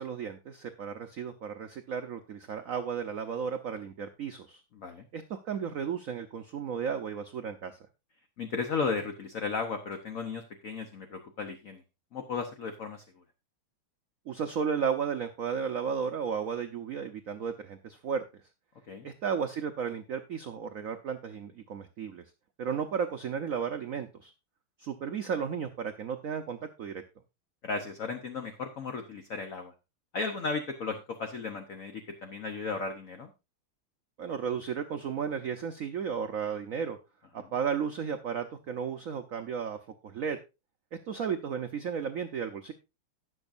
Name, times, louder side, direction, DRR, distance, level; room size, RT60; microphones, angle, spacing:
voice 1, 0.0-4.6 5.1-7.8 14.3-18.2 19.0-22.2 22.6-24.3 24.8-27.0 34.2-37.0 37.3-39.8 40.0-40.4 41.1-42.7, right 7 dB, 80° right, 7 dB, 0.7 m, -34 dB
voice 2, 8.4-11.8 12.1-13.0 18.9-19.1 27.6-29.7 30.1-33.3 37.4-37.5, left 4 dB, 50° left, 6 dB, 1.0 m, -35 dB
17.5 x 6.3 x 2.5 m, 0.26 s
omnidirectional pair, 2.3 m